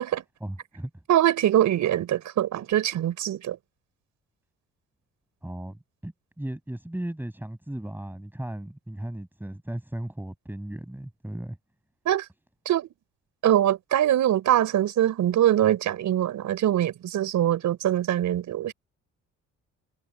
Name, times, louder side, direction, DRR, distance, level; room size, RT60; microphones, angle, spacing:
voice 1, 0.4-0.9 5.4-11.6, right 1 dB, 5° right, 6.6 m, -36 dB
voice 2, 1.1-3.6 12.0-12.3 12.6-12.9 13.4-18.7, right 12 dB, 75° right, 4.9 m, -23 dB
cardioid pair, 90°, 30 cm